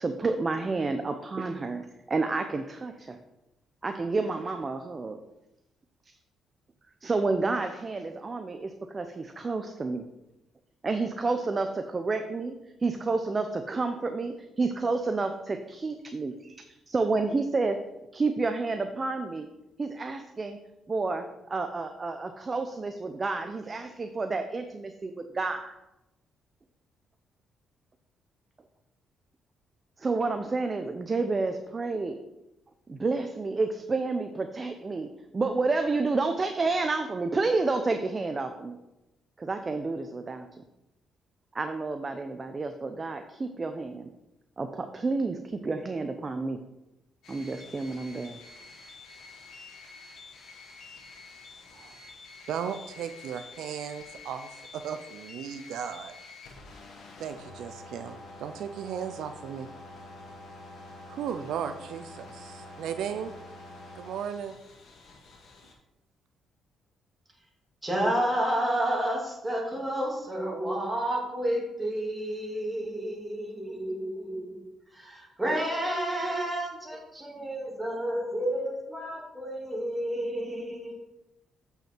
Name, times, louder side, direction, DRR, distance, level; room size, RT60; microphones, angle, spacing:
voice 1, 0.0-3.2 3.8-5.2 7.0-10.0 10.8-12.5 12.8-17.8 18.1-19.5 19.8-20.6 20.9-25.7 30.0-32.2 32.9-38.8 39.4-40.5 41.5-44.1 44.6-46.6 47.3-48.4, right 3 dB, 30° right, 7 dB, 0.6 m, -30 dB
sound 1, 47.2-65.7, left 3 dB, 70° left, 1.7 m, -47 dB
voice 2, 52.5-56.1 57.2-59.7 61.1-63.3 63.9-64.5, right 8 dB, 80° right, 9 dB, 0.4 m, -36 dB
voice 3, 67.8-74.6 74.9-81.1, right 1 dB, 10° right, -2 dB, 2.6 m, -30 dB
7.7 x 5.6 x 4.4 m, 0.93 s
cardioid pair, 90°, 0 cm